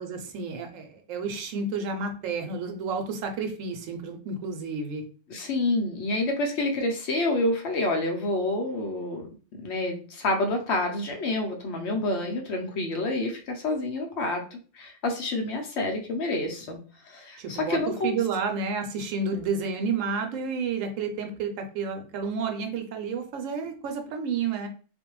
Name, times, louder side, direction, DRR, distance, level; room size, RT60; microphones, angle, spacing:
voice 1, 0.0-5.0 17.4-24.7, right 5 dB, 85° right, 5 dB, 1.0 m, -31 dB
voice 2, 5.3-9.3 9.6-16.8 17.0-18.2, left 2 dB, 65° left, 3 dB, 0.8 m, -28 dB
2.5 x 2.1 x 2.9 m, 0.39 s
omnidirectional pair, 1.3 m